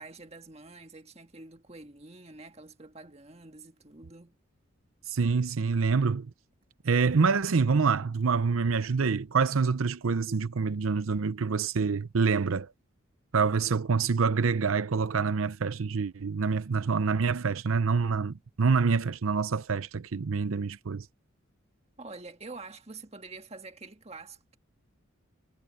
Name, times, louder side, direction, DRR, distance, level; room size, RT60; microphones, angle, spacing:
voice 1, 0.0-4.3 22.0-24.6, right 3 dB, 30° right, 1.6 m, -47 dB
voice 2, 5.1-6.3 6.8-12.7 13.3-21.1, right 5 dB, 85° right, 0.6 m, -26 dB
head